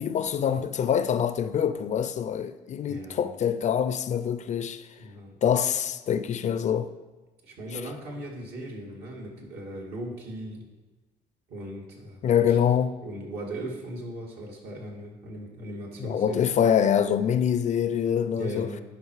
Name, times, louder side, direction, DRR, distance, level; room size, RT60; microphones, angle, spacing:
voice 1, 0.0-4.8 5.4-6.9 12.2-12.9 16.0-18.7, left 8 dB, 45° left, 0.5 m, -25 dB
voice 2, 2.9-3.4 5.0-5.4 7.4-10.7 11.5-12.6 13.0-16.5 18.4-18.8, right 1 dB, 70° right, 2.5 m, -38 dB
11.5 x 5.1 x 4.8 m
cardioid pair, 110°, 17 cm